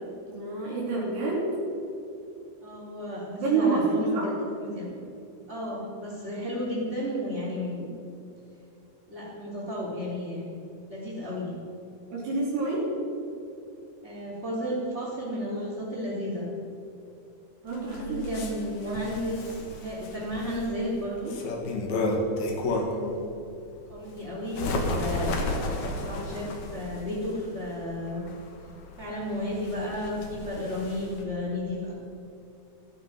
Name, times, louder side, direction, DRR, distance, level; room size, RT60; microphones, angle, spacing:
voice 1, 0.3-1.5 3.4-4.3 12.1-12.9 17.6-18.3 18.9-19.0 22.6-23.2, right 3 dB, 80° right, -5 dB, 5.9 m, -28 dB
voice 2, 2.6-4.3 4.6-4.9 5.5-7.9 9.1-10.4 10.9-11.5 14.0-16.5 17.7-21.3 23.9-25.3 26.0-28.2 29.0-31.9, equal, 15° right, -10 dB, 3.5 m, -33 dB
Bird, 17.7-23.1 23.6-31.2, left 2 dB, 55° left, 2.8 m, -33 dB
15.0 x 14.5 x 5.9 m, 2.7 s
omnidirectional pair, 4.6 m